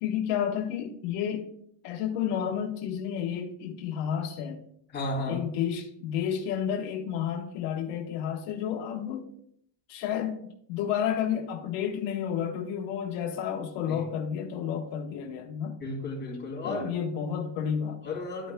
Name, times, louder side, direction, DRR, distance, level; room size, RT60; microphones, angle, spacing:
voice 1, 0.0-1.5 1.8-4.6 5.3-9.3 9.9-15.8 16.6-18.0, left 8 dB, 80° left, 2 dB, 1.3 m, -31 dB
voice 2, 4.9-5.4 13.9-14.1 15.8-16.8 18.0-18.5, left 2 dB, 20° left, -2 dB, 3.0 m, -33 dB
13.0 x 5.6 x 2.2 m, 0.67 s
cardioid pair, 135°, 48 cm